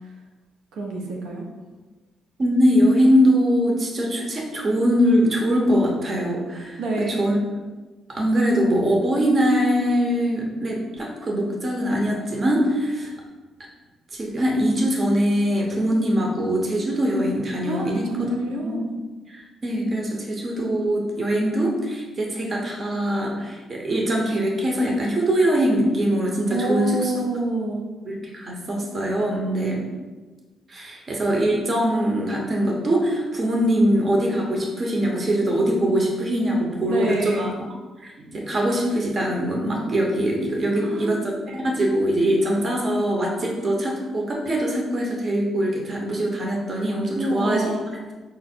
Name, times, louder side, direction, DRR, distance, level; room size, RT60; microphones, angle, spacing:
voice 1, 0.7-1.5 6.8-7.3 17.6-18.9 26.5-27.8 36.8-37.5 40.8-41.2 47.1-48.1, right 2 dB, 85° right, 0 dB, 0.8 m, -27 dB
voice 2, 2.4-7.3 8.1-13.1 14.1-18.0 18.6-18.8 19.3-27.1 28.0-29.9 30.7-37.5 38.0-47.7, equal, 40° right, -1 dB, 0.9 m, -22 dB
5.1 x 2.0 x 4.3 m, 1.3 s
cardioid pair, 90°, 0 cm